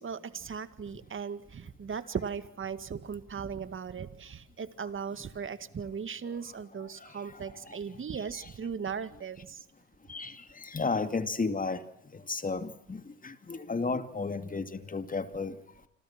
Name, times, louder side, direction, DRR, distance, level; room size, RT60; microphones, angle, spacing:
voice 1, 0.0-9.6, right 6 dB, 40° right, 13 dB, 2.1 m, -38 dB
voice 2, 10.7-11.8 12.3-15.5, left 4 dB, 25° left, 10 dB, 2.6 m, -33 dB
28.5 x 26.0 x 6.0 m, 0.69 s
cardioid pair, 90°, 30 cm